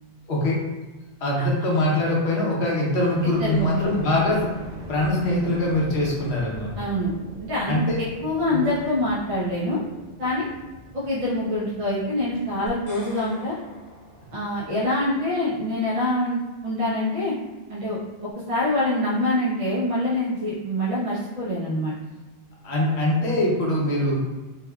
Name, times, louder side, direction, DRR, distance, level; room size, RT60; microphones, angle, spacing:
voice 1, 0.3-0.6 1.2-4.5 4.9-6.7 7.7-8.0 8.5-8.7 22.6-24.2, left 1 dB, 70° left, -3 dB, 1.0 m, -23 dB
sound 1, 3.1-17.1 17.6-18.3, right 1 dB, 75° right, 1.0 m, -43 dB
voice 2, 3.2-3.9 6.8-7.1 7.5-9.8 10.2-10.5 10.9-13.5 14.3-17.4 17.7-18.0 18.5-21.9, left 1 dB, 45° right, -8 dB, 0.5 m, -25 dB
sound 2, 12.7-15.0, left 1 dB, 40° left, 0.9 m, -45 dB
3.3 x 2.3 x 2.2 m, 1.2 s
omnidirectional pair, 1.2 m